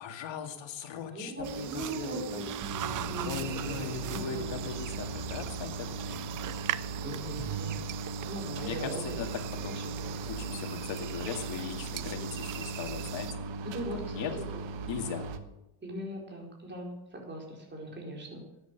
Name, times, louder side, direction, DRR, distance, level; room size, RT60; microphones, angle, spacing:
voice 1, 0.0-2.4 3.3-6.2 7.4-7.5 8.6-9.9 10.3-13.4 13.9-14.4 14.9-15.3, left 7 dB, 70° left, 4 dB, 2.2 m, -39 dB
voice 2, 1.1-3.4 3.7-4.6 7.0-9.2 9.7-10.1 13.7-14.6 15.8-18.4, right 1 dB, 25° right, -1 dB, 4.6 m, -40 dB
sound 1, 1.4-13.3, right 12 dB, 45° right, 0.5 m, -40 dB
sound 2, 1.4-15.4, right 3 dB, 65° right, 1.4 m, -38 dB
13.0 x 9.7 x 6.9 m, 0.93 s
cardioid pair, 130°, 47 cm